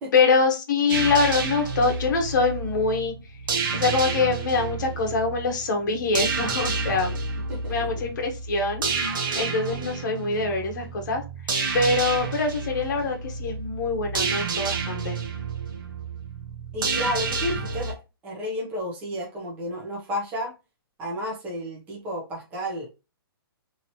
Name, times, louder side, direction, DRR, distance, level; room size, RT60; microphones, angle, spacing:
voice 1, 0.1-3.1 3.7-7.2 7.7-8.8 9.3-11.2 11.7-15.2, left 4 dB, 50° left, 3 dB, 0.9 m, -24 dB
sound 1, 0.9-17.9, right 4 dB, 55° right, 0.9 m, -30 dB
voice 2, 7.5-8.0 16.7-18.0 18.2-20.5 21.0-22.9, equal, 10° right, -3 dB, 0.7 m, -32 dB
2.9 x 2.8 x 2.8 m, 0.28 s
hypercardioid pair, 170°, 13 cm